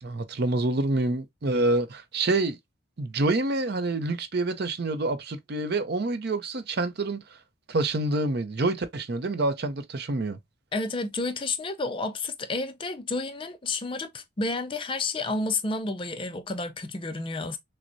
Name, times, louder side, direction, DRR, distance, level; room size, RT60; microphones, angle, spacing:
voice 1, 0.0-2.6 3.0-7.2 7.7-10.4, right 2 dB, 50° right, 0.5 m, -27 dB
voice 2, 10.7-17.6, left 3 dB, 25° left, 0.4 m, -30 dB
6.0 x 2.1 x 2.6 m
head